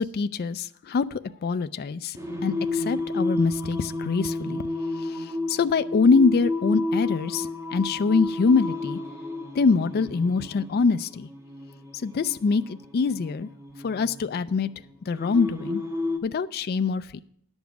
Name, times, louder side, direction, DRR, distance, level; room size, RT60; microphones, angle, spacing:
voice 1, 0.0-4.6 4.9-9.0 9.5-11.3 12.0-13.5 13.8-14.7 15.1-15.8 16.2-17.2, left 4 dB, 50° left, 11 dB, 0.4 m, -24 dB
Singing, 2.2-16.2, left 2 dB, 15° right, 1.2 m, -32 dB
10.5 x 7.2 x 6.0 m, 0.70 s
head